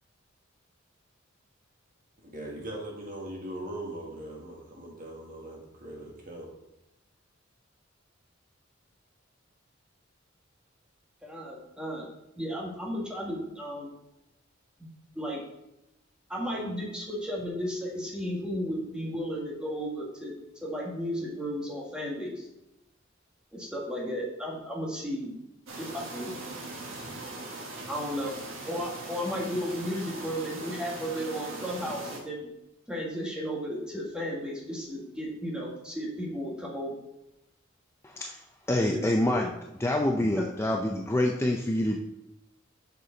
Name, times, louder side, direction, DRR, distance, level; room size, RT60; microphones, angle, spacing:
voice 1, 2.2-6.5, right 1 dB, 45° right, -1 dB, 1.7 m, -40 dB
voice 2, 11.2-12.1 12.4-13.9 15.1-15.4 16.3-20.3 20.6-22.5 23.5-25.3 25.8-26.3 27.9-28.3 28.6-32.5 32.9-36.9 38.8-39.1 40.4-40.5, equal, 5° right, -3 dB, 1.7 m, -34 dB
sound 1, 25.7-32.2, right 2 dB, 80° right, 1.5 m, -40 dB
voice 3, 38.0-38.4 38.7-39.5 39.8-42.0, left 1 dB, 15° left, 2 dB, 0.5 m, -26 dB
6.8 x 6.8 x 3.9 m, 0.88 s
head